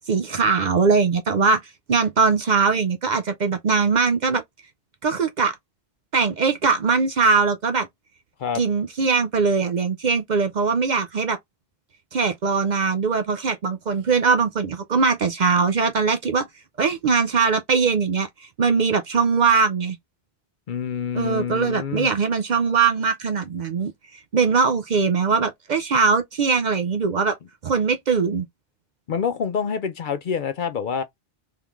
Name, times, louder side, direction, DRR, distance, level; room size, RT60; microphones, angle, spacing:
voice 1, 0.1-1.6 1.9-4.4 5.0-5.5 6.1-7.9 8.5-11.4 12.1-16.5 16.8-18.3 18.6-20.0 21.1-23.9 24.3-27.4 27.6-28.4, right 5 dB, 55° right, 0.6 m, -21 dB
voice 2, 20.7-22.1 29.1-31.0, left 7 dB, 60° left, 0.6 m, -27 dB
3.7 x 3.5 x 3.0 m
omnidirectional pair, 1.1 m